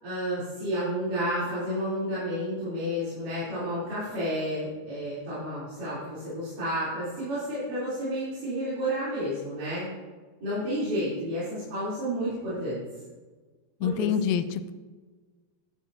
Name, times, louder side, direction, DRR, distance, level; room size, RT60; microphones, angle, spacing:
voice 1, 0.0-9.9 10.4-12.8 13.8-14.1, equal, 60° right, -12 dB, 4.7 m, -31 dB
voice 2, 13.8-14.7, left 8 dB, 80° left, 10 dB, 2.1 m, -26 dB
11.5 x 10.0 x 2.7 m, 1.4 s
omnidirectional pair, 4.4 m